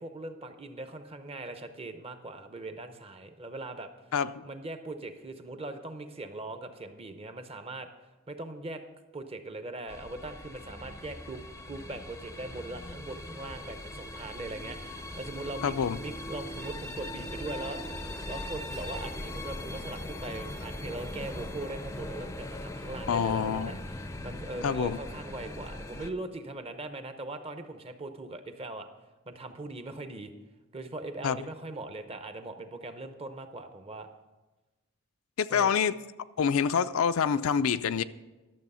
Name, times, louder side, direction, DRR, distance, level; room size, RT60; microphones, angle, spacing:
voice 1, 0.0-3.9 4.4-7.9 8.3-8.8 9.1-17.8 18.2-28.9 29.3-30.3 30.7-34.1 35.5-35.8, right 2 dB, 30° right, 8 dB, 0.7 m, -40 dB
voice 2, 4.1-4.4 15.6-16.0 23.1-23.7 24.6-25.0 31.2-31.4 35.4-36.0 36.4-38.0, left 7 dB, 70° left, 12 dB, 0.4 m, -26 dB
sound 1, 9.9-26.1, left 1 dB, 15° left, 0.5 m, -40 dB
12.0 x 7.0 x 5.5 m, 1.1 s
head